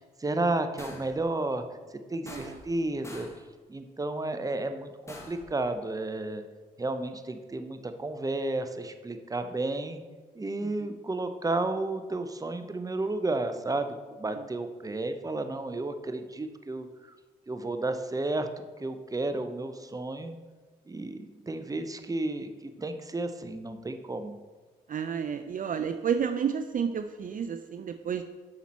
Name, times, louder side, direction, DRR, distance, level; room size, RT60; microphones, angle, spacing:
voice 1, 0.2-1.6 2.1-3.3 3.7-6.4 6.8-10.0 10.3-16.9 17.5-18.5 18.8-20.4 20.9-22.5 22.8-24.3, right 2 dB, 20° right, 8 dB, 0.7 m, -32 dB
sound 1, 0.8-1.2 2.3-2.8 3.0-3.4 5.1-5.5, left 1 dB, 15° left, 1.6 m, -45 dB
voice 2, 2.3-2.6 10.6-10.7 14.3-14.4 24.9-28.2, right 7 dB, 50° right, 7 dB, 0.5 m, -31 dB
7.2 x 5.9 x 4.3 m, 1.3 s
supercardioid pair, 55°, 17 cm